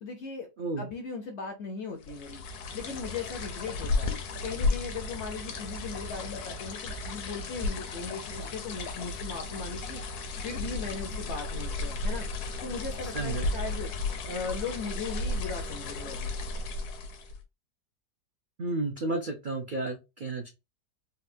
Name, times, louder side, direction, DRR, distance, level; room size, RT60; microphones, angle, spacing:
voice 1, 0.0-0.5 0.8-2.4 2.7-4.1 4.4-10.0 10.4-12.3 12.6-13.9 14.3-16.2, left 4 dB, 65° left, 4 dB, 0.7 m, -38 dB
voice 2, 0.6-0.9 13.0-13.5 18.6-20.5, right 2 dB, 70° right, 2 dB, 0.4 m, -32 dB
sound 1, 2.0-17.4, left 3 dB, 80° left, 1.2 m, -34 dB
4.0 x 2.2 x 2.5 m, 0.25 s
omnidirectional pair, 1.7 m